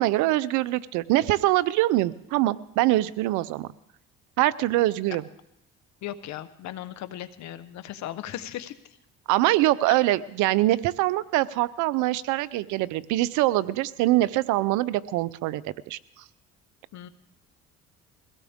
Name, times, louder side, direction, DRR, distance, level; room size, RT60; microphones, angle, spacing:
voice 1, 0.0-3.7 4.4-5.2 9.3-16.0, right 16 dB, 80° right, 18 dB, 0.7 m, -24 dB
voice 2, 6.0-8.7 16.9-17.1, left 12 dB, 70° left, 12 dB, 1.1 m, -37 dB
22.5 x 16.5 x 3.6 m, 0.81 s
supercardioid pair, 80°, 29 cm